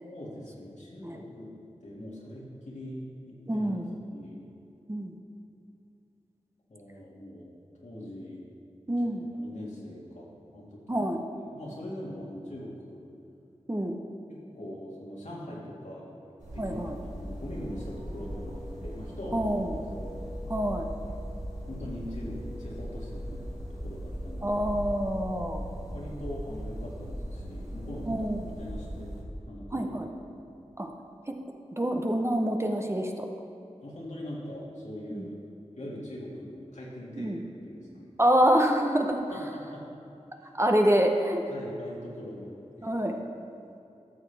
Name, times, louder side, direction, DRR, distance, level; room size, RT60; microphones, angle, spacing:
voice 1, 0.0-1.5 1.8-3.7 4.1-4.5 6.7-8.4 9.4-11.0 11.5-13.0 14.3-16.2 16.5-16.8 17.1-19.5 20.0-20.3 21.7-24.6 25.9-28.3 28.6-29.1 29.5-29.9 33.8-35.3 35.8-38.1 39.3-39.9 40.3-40.5 41.5-43.0, left 1 dB, 75° left, -5 dB, 2.1 m, -42 dB
voice 2, 3.5-3.9 4.9-5.1 8.9-9.2 10.9-11.2 13.7-14.0 16.6-16.9 19.3-19.7 20.5-20.9 24.4-25.6 28.1-28.4 29.7-30.0 30.8-30.9 31.3-31.4 31.7-33.3 35.1-35.3 37.2-37.4 38.2-39.2 40.6-41.4 42.8-43.2, equal, 20° right, 3 dB, 0.8 m, -26 dB
sound 1, 16.4-29.2, equal, 75° right, 2.1 m, -39 dB
13.5 x 6.5 x 3.4 m, 2.8 s
cardioid pair, 40°, 12 cm